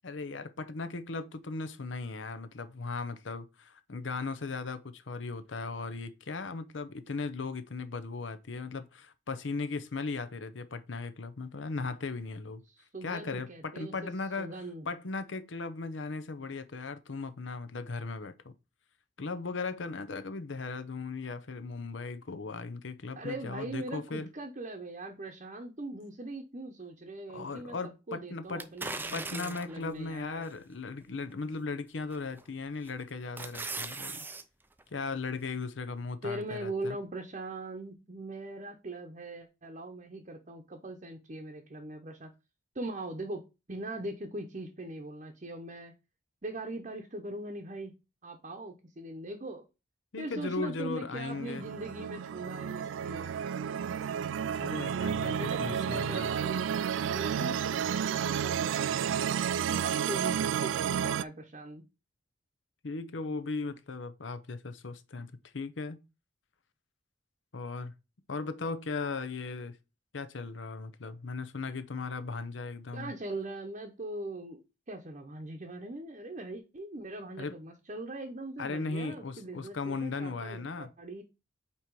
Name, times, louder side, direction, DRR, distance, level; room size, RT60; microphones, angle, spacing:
voice 1, 0.0-12.6 13.0-14.6 14.9-18.5 19.2-24.3 27.3-28.7 29.1-34.3 34.9-37.0 50.1-51.6 54.6-55.3 55.6-56.4 62.8-66.0 67.5-67.9 68.3-69.8 70.1-73.1 77.4-77.5 78.6-80.9, left 3 dB, 80° left, 0.7 m, -37 dB
voice 2, 12.7-13.9 14.4-14.9 23.2-30.5 36.2-42.3 42.7-45.9 46.4-47.9 48.2-49.6 50.2-53.4 54.9-56.7 57.1-59.4 59.7-60.7 61.0-61.8 72.9-74.6 74.9-81.2, right 2 dB, 40° right, 0.8 m, -41 dB
sound 1, 28.6-29.8 30.4-30.5 32.1-32.4 32.9-34.4 34.8-34.9, right 3 dB, 10° right, 0.4 m, -38 dB
sound 2, 51.2-61.2, right 8 dB, 85° right, 0.3 m, -31 dB
8.6 x 3.0 x 4.6 m
head